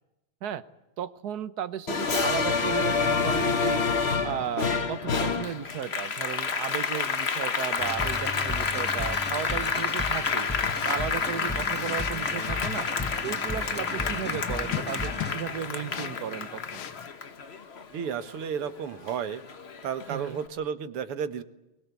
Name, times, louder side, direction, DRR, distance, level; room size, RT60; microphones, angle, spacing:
voice 1, 1.0-3.8 4.2-10.5 10.8-12.9 13.2-16.8 20.1-20.4, right 9 dB, 55° right, 13 dB, 1.3 m, -34 dB
Applause, 1.9-18.7 19.1-20.2, left 5 dB, 40° left, 1.1 m, -29 dB
sound 1, 7.8-15.7, left 2 dB, 10° left, 0.6 m, -36 dB
sound 2, 10.6-17.1, left 10 dB, 70° left, 2.0 m, -40 dB
voice 2, 17.9-19.4 19.8-21.4, right 7 dB, 80° right, 11 dB, 2.3 m, -32 dB
23.0 x 21.0 x 8.4 m, 0.93 s
omnidirectional pair, 2.4 m